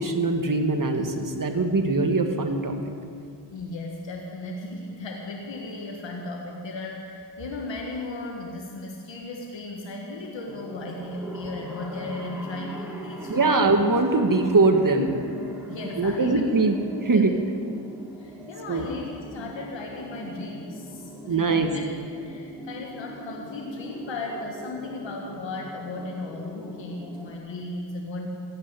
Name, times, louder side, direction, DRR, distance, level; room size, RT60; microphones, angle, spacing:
voice 1, 0.0-2.8 13.3-15.1 16.0-16.8 17.0-17.3 18.7-18.9 21.2-21.7, right 3 dB, 45° right, 5 dB, 1.8 m, -22 dB
voice 2, 3.5-13.7 15.7-16.5 17.1-17.3 18.2-21.8 22.2-28.3, left 2 dB, 90° left, 0 dB, 1.6 m, -36 dB
sound 1, 10.4-27.4, equal, 5° right, 3.4 m, -41 dB
15.0 x 9.3 x 9.7 m, 2.3 s
cardioid pair, 45°, 43 cm